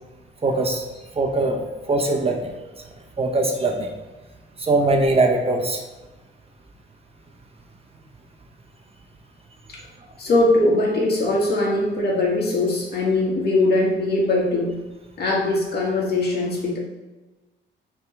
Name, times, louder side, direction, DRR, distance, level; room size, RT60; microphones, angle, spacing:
voice 1, 0.4-0.8 1.2-1.6 1.9-2.5 3.2-3.9 4.6-5.8, right 2 dB, 30° right, 2 dB, 1.0 m, -21 dB
voice 2, 10.2-14.7 15.2-16.8, left 2 dB, 55° left, -3 dB, 2.0 m, -21 dB
6.7 x 3.7 x 4.6 m, 1.2 s
cardioid pair, 90°, 20 cm